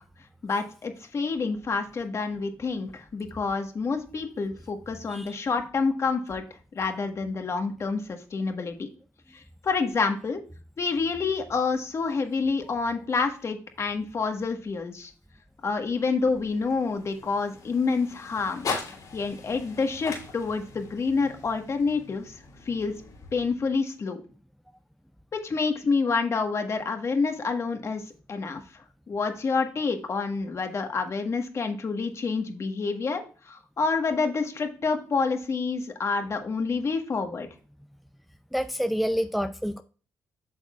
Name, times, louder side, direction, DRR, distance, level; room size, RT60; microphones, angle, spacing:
voice 1, 0.4-6.4 6.7-8.9 9.3-10.4 10.8-15.1 15.6-18.7 19.1-22.3 22.6-22.9 23.3-24.2 25.3-28.6 29.1-37.5, left 4 dB, 45° left, 1.5 m, -28 dB
voice 2, 5.1-5.4 38.5-39.8, equal, ahead, 0.5 m, -28 dB
sound 1, 15.6-23.9, left 4 dB, 65° left, 3.2 m, -40 dB
8.8 x 6.5 x 2.4 m
supercardioid pair, 65°, 7 cm